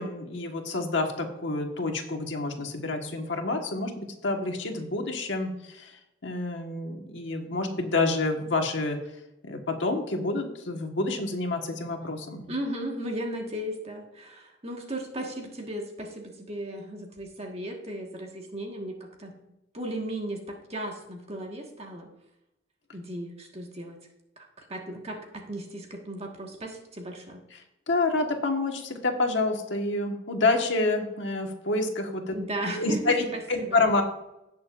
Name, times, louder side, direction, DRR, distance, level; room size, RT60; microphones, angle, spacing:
voice 1, 0.0-9.0 9.4-12.5 27.5-27.6 27.9-32.3 32.7-34.0, left 2 dB, 75° left, 3 dB, 1.5 m, -28 dB
voice 2, 12.5-19.4 19.7-22.1 22.9-24.0 24.4-27.4 32.3-33.8, right 1 dB, 30° right, 1 dB, 1.5 m, -36 dB
17.0 x 6.6 x 2.5 m, 0.90 s
head